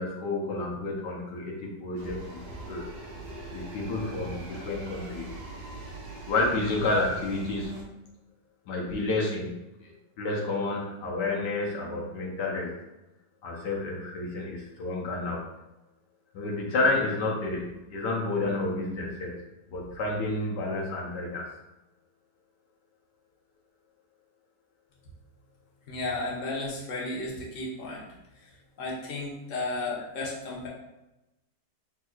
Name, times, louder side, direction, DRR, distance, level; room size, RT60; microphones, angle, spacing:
voice 1, 0.0-2.9 3.5-5.3 6.3-7.8 8.7-9.5 9.8-12.7 13.4-15.4 16.3-19.4 19.7-21.5, left 2 dB, 75° left, -2 dB, 1.5 m, -30 dB
sound 1, 1.9-7.8, right 2 dB, 45° right, 0.5 m, -41 dB
voice 2, 25.9-28.0 28.8-30.7, left 2 dB, 50° left, -4 dB, 1.3 m, -33 dB
5.9 x 3.6 x 2.3 m, 0.96 s
omnidirectional pair, 1.9 m